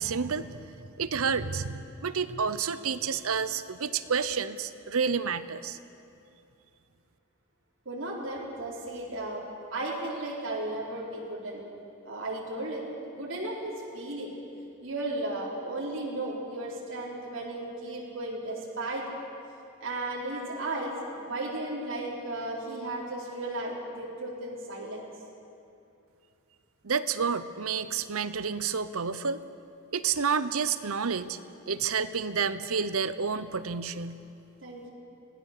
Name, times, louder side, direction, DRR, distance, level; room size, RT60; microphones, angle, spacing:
voice 1, 0.0-5.8 26.8-29.4 29.9-31.4 31.7-34.2, right 6 dB, 80° right, 13 dB, 0.8 m, -30 dB
voice 2, 7.9-9.4 9.7-11.6 12.0-14.3 14.8-19.0 19.8-25.0 34.6-34.9, right 2 dB, 60° right, -5 dB, 3.9 m, -35 dB
25.5 x 17.5 x 6.7 m, 2.6 s
head